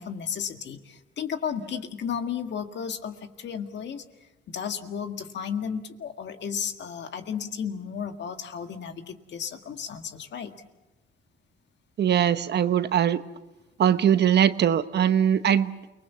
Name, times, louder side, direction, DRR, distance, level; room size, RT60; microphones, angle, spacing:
voice 1, 0.0-4.0 4.5-10.5, left 7 dB, 65° left, 7 dB, 1.8 m, -33 dB
voice 2, 12.0-13.2 13.8-15.7, right 9 dB, 60° right, 13 dB, 1.0 m, -21 dB
29.0 x 20.0 x 7.3 m, 1.0 s
cardioid pair, 90°, 20 cm